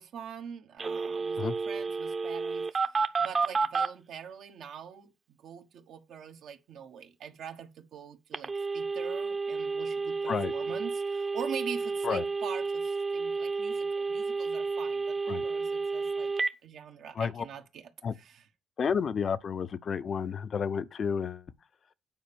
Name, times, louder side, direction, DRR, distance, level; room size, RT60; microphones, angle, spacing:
voice 1, 0.0-5.1 5.4-16.3 16.6-18.5, right 7 dB, 75° right, 1.5 m, -44 dB
Telephone, 0.8-3.9 8.3-16.5, right 4 dB, 35° right, 0.9 m, -31 dB
voice 2, 18.8-21.4, left 6 dB, 50° left, 0.7 m, -31 dB
9.1 x 4.4 x 6.9 m
cardioid pair, 90°, 0 cm